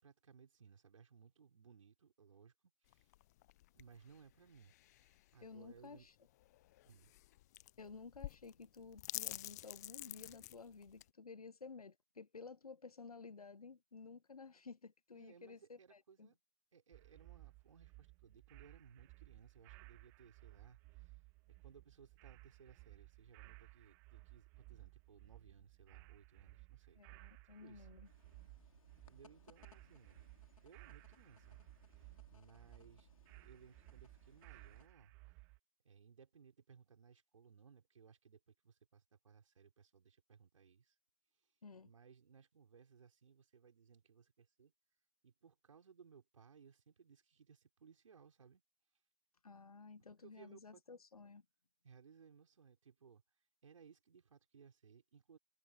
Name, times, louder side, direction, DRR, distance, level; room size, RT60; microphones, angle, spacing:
voice 1, 0.0-2.5 2.8-3.1 3.7-6.1 6.9-7.1 15.1-16.4 16.7-21.2 21.5-27.0 27.6-27.9 29.0-30.2 30.6-31.6 32.0-35.1 35.8-41.0 41.8-44.7 45.2-48.6 50.2-51.0 51.8-53.2 53.6-55.4, right 6 dB, 60° right, 5.5 m, -63 dB
sound 1, 2.9-11.1, left 16 dB, 30° left, 0.7 m, -50 dB
voice 2, 5.4-6.1 7.8-16.3 27.0-28.1 41.6-41.9 49.4-51.4, left 4 dB, 85° left, 0.9 m, -54 dB
sound 2, 16.9-35.6, right 28 dB, 10° right, 0.4 m, -59 dB
sound 3, 28.0-34.9, left 6 dB, 65° left, 3.3 m, -68 dB
figure-of-eight pair, 140°, 18 cm